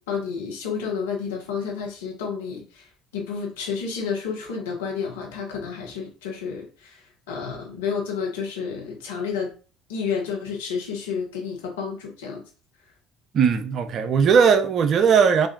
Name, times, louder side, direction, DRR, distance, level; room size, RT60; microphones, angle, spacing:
voice 1, 0.1-2.9 3.1-9.5 9.9-12.4, left 6 dB, 70° left, 0.9 m, -30 dB
voice 2, 13.3-15.5, right 6 dB, 45° right, 0.4 m, -18 dB
3.4 x 2.5 x 2.7 m
figure-of-eight pair, 55°, 0 cm